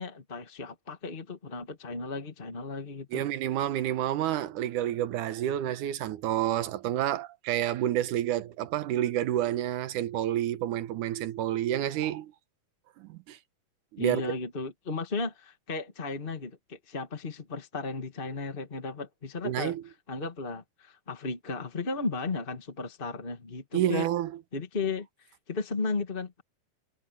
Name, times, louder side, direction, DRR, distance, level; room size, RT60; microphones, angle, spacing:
voice 1, 0.0-3.2 14.0-19.8 20.1-24.1 24.5-26.4, left 3 dB, 25° left, 1.2 m, -35 dB
voice 2, 3.1-12.3 13.0-13.4 13.9-14.2 19.4-19.8 23.7-24.3, right 12 dB, 75° right, 2.5 m, -29 dB
omnidirectional pair, 3.7 m